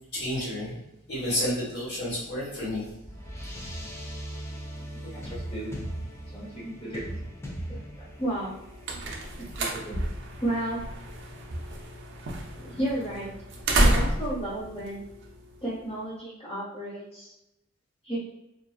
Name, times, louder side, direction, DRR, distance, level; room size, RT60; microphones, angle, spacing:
voice 1, 0.1-0.7 1.1-2.9, left 1 dB, 55° left, -7 dB, 1.1 m, -30 dB
sound 1, 2.4-12.9, right 1 dB, 10° left, 0.3 m, -41 dB
voice 2, 4.8-5.8 6.3-7.2 7.7-8.5 8.9-10.0 10.4-10.8 12.5-13.3 13.7-15.0 15.6-17.3 18.0-18.2, right 1 dB, 30° left, -8 dB, 1.1 m, -33 dB
sound 2, 8.4-15.8, right 1 dB, 60° right, 0.4 m, -30 dB
2.5 x 2.3 x 2.3 m, 0.89 s
head